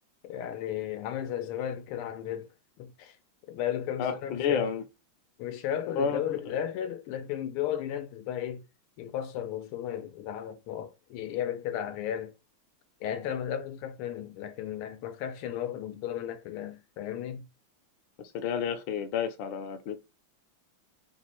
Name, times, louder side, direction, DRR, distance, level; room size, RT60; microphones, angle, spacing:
voice 1, 0.2-2.5 2.8-3.2 3.5-4.7 5.4-8.6 9.0-12.3 13.0-17.5, left 10 dB, 90° left, 1.5 m, -34 dB
voice 2, 4.0-4.8 6.0-6.4 18.3-20.0, left 7 dB, 70° left, 1.4 m, -30 dB
4.5 x 2.1 x 4.3 m
omnidirectional pair, 2.4 m